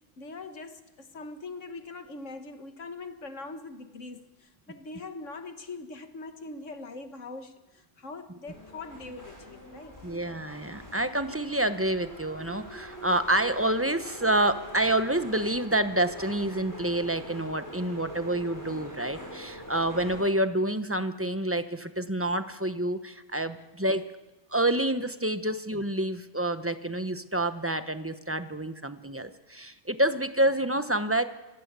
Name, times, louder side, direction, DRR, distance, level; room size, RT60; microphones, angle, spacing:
voice 1, 0.2-10.0, left 3 dB, 65° left, 1.9 m, -42 dB
sound 1, 8.5-20.2, equal, 15° left, 6.8 m, -44 dB
voice 2, 10.0-24.1 24.5-31.2, right 1 dB, 10° right, 0.9 m, -28 dB
26.5 x 18.0 x 8.3 m
omnidirectional pair, 1.4 m